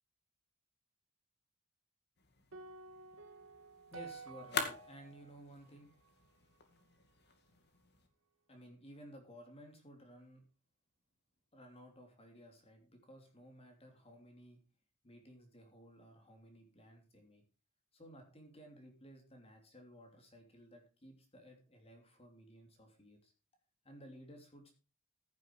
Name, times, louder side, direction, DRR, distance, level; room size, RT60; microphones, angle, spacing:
sound 1, 2.2-8.1, left 5 dB, 55° left, 2.2 m, -46 dB
sound 2, 2.5-6.8, right 4 dB, 80° right, 2.1 m, -53 dB
voice 1, 3.9-5.9 8.5-10.4 11.5-14.6 15.0-17.4 17.9-23.3 23.8-24.7, equal, 30° left, 3 dB, 3.0 m, -56 dB
15.5 x 7.6 x 4.6 m, 0.32 s
head